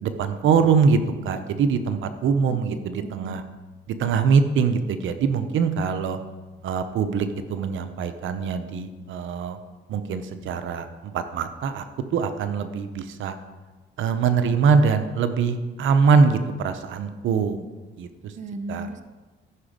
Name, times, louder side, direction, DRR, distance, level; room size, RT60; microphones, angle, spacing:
voice 1, 0.0-3.4 4.0-6.2 6.6-9.6 9.9-10.9 11.1-11.8 12.1-13.4 14.0-17.7 18.0-18.1 18.7-18.9, right 5 dB, 75° right, 9 dB, 0.9 m, -23 dB
voice 2, 2.5-3.4 18.4-19.0, right 3 dB, 40° right, 10 dB, 0.7 m, -36 dB
14.5 x 6.0 x 5.1 m, 1.3 s
cardioid pair, 90°, 20 cm